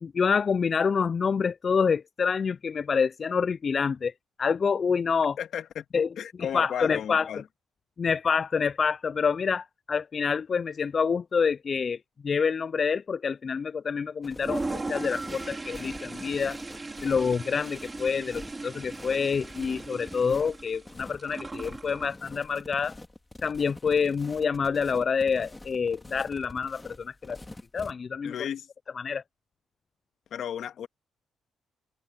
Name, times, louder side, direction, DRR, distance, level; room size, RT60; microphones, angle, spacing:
voice 1, 0.0-4.1 4.4-5.4 5.9-6.1 6.4-7.3 8.0-16.6 17.0-23.0 23.4-27.4 27.7-28.3 29.0-29.2, left 6 dB, 40° left, 0.3 m, -27 dB
voice 2, 5.4-5.9 6.2-7.5 28.2-28.7 30.3-30.9, left 9 dB, 65° left, 1.8 m, -34 dB
sound 1, 14.2-27.9, left 2 dB, 15° left, 2.7 m, -46 dB
Toilet flush, 14.3-22.2, right 3 dB, 20° right, 4.4 m, -38 dB
cardioid pair, 90°, 0 cm